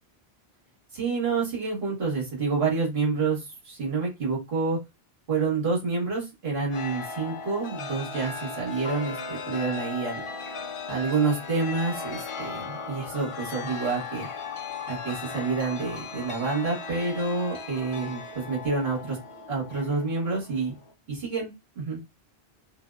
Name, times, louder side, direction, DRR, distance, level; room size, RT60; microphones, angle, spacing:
voice 1, 0.9-4.8 5.3-10.2 10.9-14.3 14.9-19.2 19.5-20.7 21.1-22.0, right 4 dB, 70° right, -3 dB, 1.3 m, -28 dB
Chime, 6.7-20.9, left 4 dB, 55° left, 0.3 m, -37 dB
2.7 x 2.0 x 2.2 m, 0.23 s
omnidirectional pair, 1.1 m